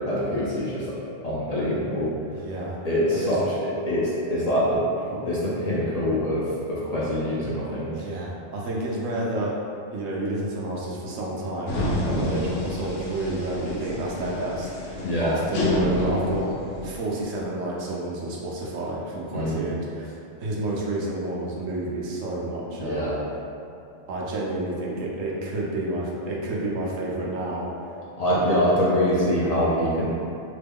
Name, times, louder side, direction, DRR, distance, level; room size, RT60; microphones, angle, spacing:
voice 1, 0.1-0.9 1.2-2.1 2.8-4.8 5.2-7.9 12.1-12.4 15.0-15.4 19.3-19.7 22.8-23.2 28.2-30.1, equal, 50° left, -8 dB, 0.4 m, -24 dB
voice 2, 2.4-2.8 3.1-3.4 7.9-9.5 9.9-16.5 16.8-20.1 20.4-23.1 24.1-27.7 28.3-28.7, right 2 dB, 85° right, -4 dB, 1.0 m, -30 dB
sound 1, 11.7-17.0, left 1 dB, 75° left, 0.9 m, -29 dB
3.1 x 2.2 x 3.4 m, 2.6 s
omnidirectional pair, 1.3 m